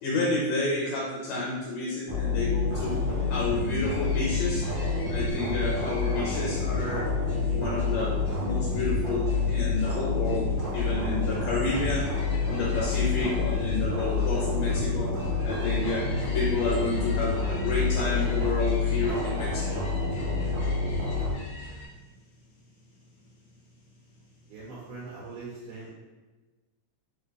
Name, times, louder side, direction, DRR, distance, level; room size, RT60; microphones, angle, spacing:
voice 1, 0.0-3.0 3.3-4.6 5.1-7.1 7.5-12.1 12.5-15.1 15.4-16.1 16.3-19.9, left 2 dB, 75° left, -4 dB, 1.9 m, -30 dB
sound 1, 2.1-21.3, left 4 dB, 60° right, 1.3 m, -28 dB
sound 2, 2.7-21.9, left 2 dB, 55° left, 1.9 m, -46 dB
voice 2, 24.5-25.9, right 3 dB, 90° right, -7 dB, 2.4 m, -41 dB
5.1 x 2.4 x 3.3 m, 1.3 s
omnidirectional pair, 3.5 m